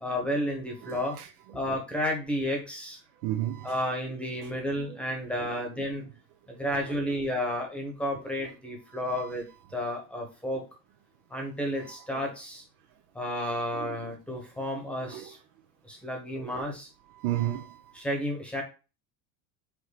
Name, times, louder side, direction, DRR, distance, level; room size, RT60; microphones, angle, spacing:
voice 1, 0.0-1.1 1.5-3.0 3.6-6.0 6.5-9.4 9.7-10.6 11.3-12.6 13.1-15.4 15.8-16.9 17.9-18.6, equal, ahead, 1.2 m, -32 dB
voice 2, 0.8-1.6 3.2-3.9 4.4-5.0 5.4-6.1 6.5-7.1 8.2-8.5 8.9-9.3 10.5-10.6 11.8-12.4 13.7-14.1 15.0-15.3 16.3-16.7 17.1-18.0, right 13 dB, 55° right, 1.0 m, -37 dB
5.6 x 4.5 x 4.1 m
cardioid pair, 175°, 50 cm